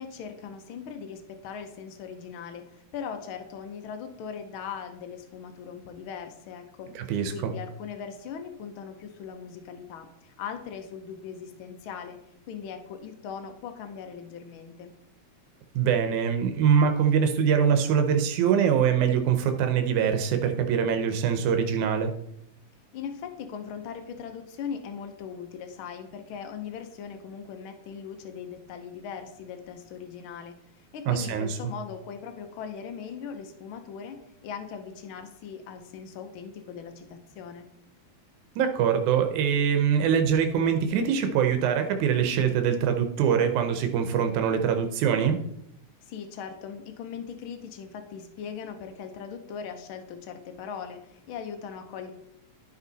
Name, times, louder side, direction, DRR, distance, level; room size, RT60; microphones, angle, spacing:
voice 1, 0.0-6.9 7.3-12.2 12.5-14.9 22.9-37.7 46.0-52.1, left 7 dB, 90° left, 7 dB, 1.1 m, -39 dB
voice 2, 7.0-7.5 15.8-22.1 31.1-31.7 38.6-45.4, right 7 dB, 85° right, 6 dB, 2.2 m, -23 dB
11.5 x 5.5 x 4.0 m, 0.78 s
omnidirectional pair, 3.4 m